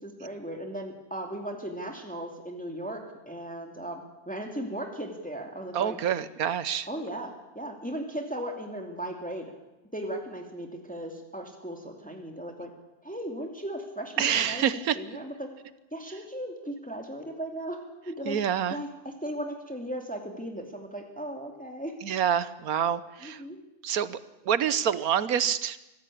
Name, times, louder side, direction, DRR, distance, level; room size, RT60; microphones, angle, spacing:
voice 1, 0.0-6.0 6.9-9.5 9.9-12.7 13.0-14.7 14.9-15.5 15.9-18.4 18.7-18.9 19.2-21.9 23.2-23.6, right 1 dB, 5° left, 2 dB, 2.5 m, -37 dB
voice 2, 5.7-6.9 14.2-15.0 18.2-18.8 22.0-23.4 23.8-24.2 24.4-25.8, right 9 dB, 70° right, 15 dB, 1.4 m, -27 dB
24.5 x 16.0 x 8.5 m, 1.0 s
omnidirectional pair, 1.6 m